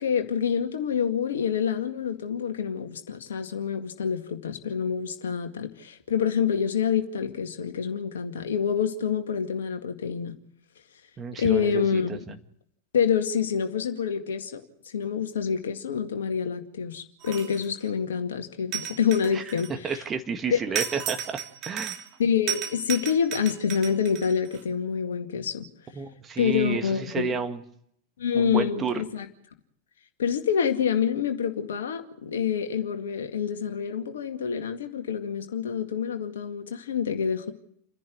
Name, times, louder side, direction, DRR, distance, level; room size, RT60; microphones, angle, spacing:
voice 1, 0.0-10.4 11.4-12.2 12.9-19.9 20.5-20.8 22.2-25.7 26.4-27.3 28.2-29.3 30.2-37.5, left 7 dB, 65° left, 6 dB, 2.1 m, -27 dB
voice 2, 11.2-12.4 19.3-19.4 19.8-21.9 25.9-27.6 28.3-29.0, right 6 dB, 20° right, 7 dB, 1.9 m, -31 dB
sound 1, 17.2-17.8 18.7-20.0 20.8-22.2 22.5-24.6, right 9 dB, 35° right, 3.0 m, -34 dB
29.0 x 10.5 x 9.3 m, 0.71 s
figure-of-eight pair, 90°, 0 cm